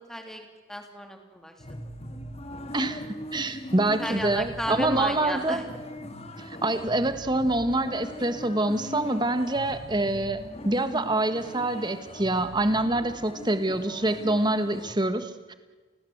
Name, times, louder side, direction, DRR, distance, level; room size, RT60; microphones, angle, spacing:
voice 1, 0.0-1.5 4.0-5.7, equal, ahead, 4 dB, 3.1 m, -33 dB
sound 1, 1.6-14.9, left 1 dB, 30° left, 1.9 m, -40 dB
voice 2, 3.3-5.6 6.4-15.5, right 2 dB, 20° right, 9 dB, 1.5 m, -26 dB
29.5 x 19.5 x 8.1 m, 1.4 s
head